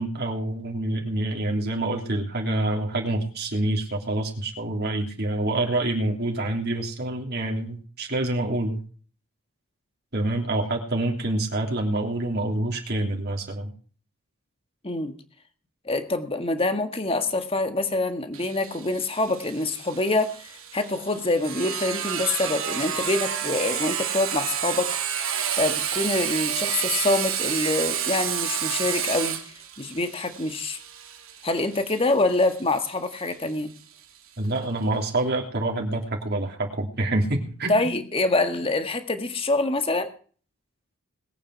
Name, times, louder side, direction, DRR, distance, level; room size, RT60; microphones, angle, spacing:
voice 1, 0.0-8.8 10.1-13.7 34.4-37.9, right 1 dB, 45° right, 0 dB, 3.2 m, -27 dB
voice 2, 15.8-29.4 29.8-30.8 31.4-33.7 37.7-40.1, left 2 dB, 25° left, 8 dB, 1.7 m, -25 dB
Sawing, 18.3-33.8, right 9 dB, 65° right, 3.0 m, -30 dB
21.0 x 9.0 x 4.7 m, 0.42 s
head